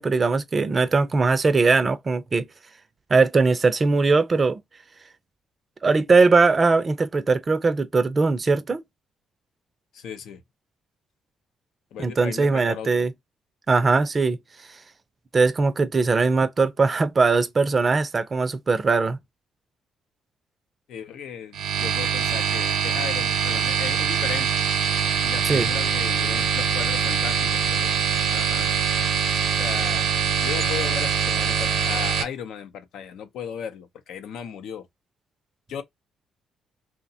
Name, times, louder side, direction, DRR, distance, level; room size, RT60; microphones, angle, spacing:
voice 1, 0.0-2.5 3.1-4.6 5.8-8.8 12.0-13.1 13.7-14.4 15.3-19.2 25.5-25.7, right 4 dB, 35° right, 0.4 m, -20 dB
voice 2, 9.9-10.4 11.9-13.1 20.9-24.5 25.2-27.9 28.3-28.7 29.6-30.1 30.4-34.9 35.7-35.8, left 8 dB, 80° left, 0.5 m, -36 dB
sound 1, 21.5-32.2, right 7 dB, 85° right, 0.7 m, -23 dB
2.8 x 2.1 x 2.7 m
cardioid pair, 90°, 0 cm